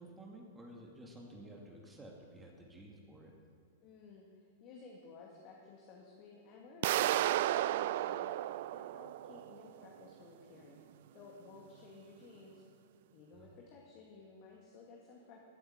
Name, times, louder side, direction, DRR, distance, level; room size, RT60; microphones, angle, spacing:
voice 1, 0.0-3.3 13.3-13.5, right 1 dB, 15° right, -1 dB, 2.2 m, -52 dB
voice 2, 3.8-10.8 11.1-12.7 13.1-15.4, left 4 dB, 45° left, -2 dB, 2.2 m, -55 dB
sound 1, 6.8-9.7, right 14 dB, 60° right, 0.3 m, -33 dB
15.0 x 7.9 x 8.2 m, 2.2 s
hypercardioid pair, 110°, 0 cm